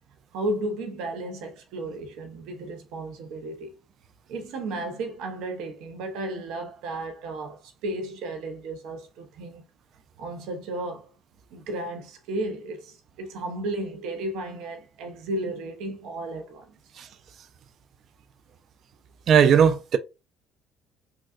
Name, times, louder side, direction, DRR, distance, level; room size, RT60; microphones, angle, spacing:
voice 1, 0.3-3.7 4.3-9.7 10.2-11.1 11.5-16.7, right 1 dB, 75° right, 0.8 m, -34 dB
voice 2, 19.3-20.0, right 7 dB, 60° right, 0.4 m, -17 dB
3.8 x 2.3 x 2.4 m
supercardioid pair, 75°, 0 cm